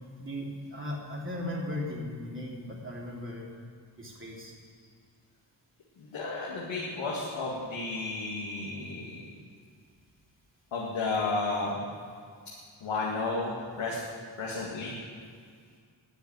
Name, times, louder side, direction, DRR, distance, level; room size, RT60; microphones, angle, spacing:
voice 1, 0.1-3.5 4.0-4.5, left 1 dB, 25° right, -3 dB, 3.3 m, -37 dB
voice 2, 6.0-9.2 10.7-11.8 12.8-14.0 14.4-14.9, left 3 dB, 85° left, -5 dB, 2.2 m, -32 dB
10.5 x 9.1 x 9.3 m, 2.1 s
cardioid pair, 85°, 46 cm